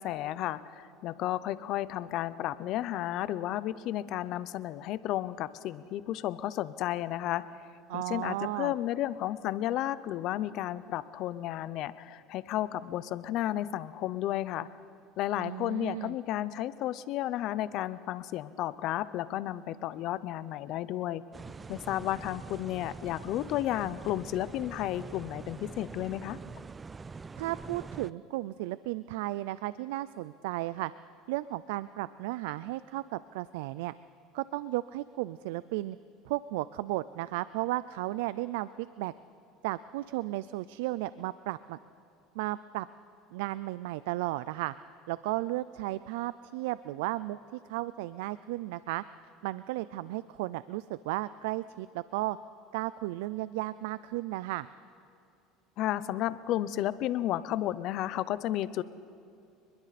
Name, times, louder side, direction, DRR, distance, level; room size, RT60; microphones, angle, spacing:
voice 1, 0.0-7.6 7.9-14.7 15.2-21.2 21.7-26.4 55.8-58.8, left 13 dB, 55° left, 16 dB, 0.7 m, -32 dB
voice 2, 7.9-8.7 15.4-16.2 27.4-30.9 31.3-33.9 34.3-36.0 36.2-39.1 39.6-41.8 42.4-42.9 43.3-44.7 45.1-49.0 49.4-52.4 52.7-54.7, right 17 dB, 85° right, 16 dB, 0.4 m, -34 dB
sound 1, 21.3-28.1, right 4 dB, 20° right, 0.4 m, -44 dB
29.5 x 21.5 x 4.2 m, 2.6 s
supercardioid pair, 120°, 0 cm